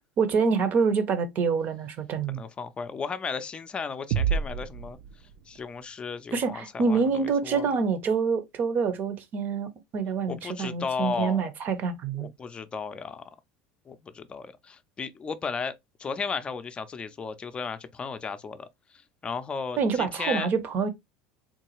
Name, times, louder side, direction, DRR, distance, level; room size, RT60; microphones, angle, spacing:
voice 1, 0.2-2.4 6.3-12.3 19.8-20.9, right 5 dB, 45° right, 0.7 m, -26 dB
voice 2, 2.3-5.0 5.5-7.7 10.3-11.5 12.1-13.2 13.9-15.7 16.0-18.7 19.2-20.5, left 5 dB, 25° left, 0.5 m, -34 dB
sound 1, 4.1-5.8, right 7 dB, 65° right, 0.4 m, -29 dB
3.8 x 2.3 x 2.9 m
supercardioid pair, 100°, 4 cm